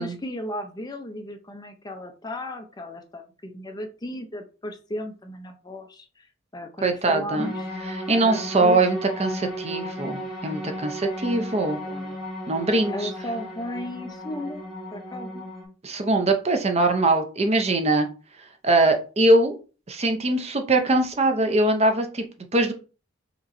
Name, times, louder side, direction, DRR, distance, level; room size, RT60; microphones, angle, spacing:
voice 1, 0.0-7.7 8.2-8.8 11.9-12.2 12.9-14.6 14.9-15.5, left 1 dB, 20° left, 5 dB, 0.5 m, -35 dB
voice 2, 6.8-7.5 7.9-11.8 12.5-13.1 15.8-18.1 18.6-19.6 19.9-22.2 22.5-22.7, right 2 dB, 35° right, 6 dB, 0.6 m, -22 dB
sound 1, 7.4-15.6, equal, ahead, 1.3 m, -35 dB
5.2 x 3.0 x 2.6 m, 0.35 s
head